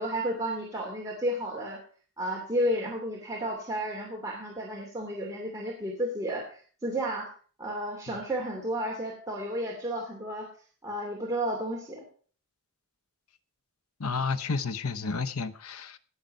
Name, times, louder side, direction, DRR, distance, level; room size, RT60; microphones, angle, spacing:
voice 1, 0.0-1.8 2.2-7.3 7.6-10.5 10.8-12.0, equal, 15° right, 2.7 m, -32 dB
voice 2, 14.0-16.0, left 4 dB, 80° left, 1.0 m, -31 dB
18.0 x 6.7 x 5.4 m
head